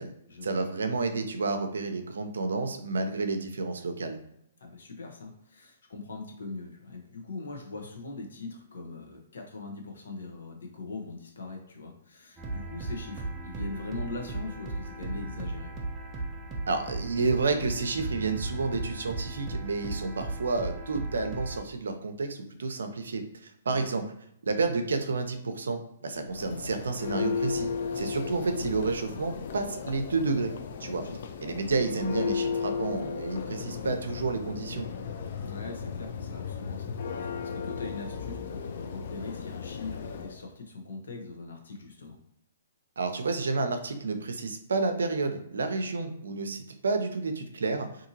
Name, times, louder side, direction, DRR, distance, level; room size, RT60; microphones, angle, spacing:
voice 1, 0.4-4.2 16.7-24.0 24.4-27.7 28.0-30.5 30.8-31.0 31.4-34.9 43.0-47.9, right 3 dB, 80° right, 6 dB, 0.5 m, -30 dB
voice 2, 4.6-15.7 23.7-23.9 30.9-31.2 35.4-42.2, left 3 dB, 80° left, 2 dB, 0.8 m, -41 dB
sound 1, 12.4-21.6, right 2 dB, 20° right, 0.5 m, -36 dB
Church bell, 26.2-40.4, left 6 dB, 55° left, 0.3 m, -35 dB
2.8 x 2.6 x 2.6 m, 0.77 s
hypercardioid pair, 135°, 0 cm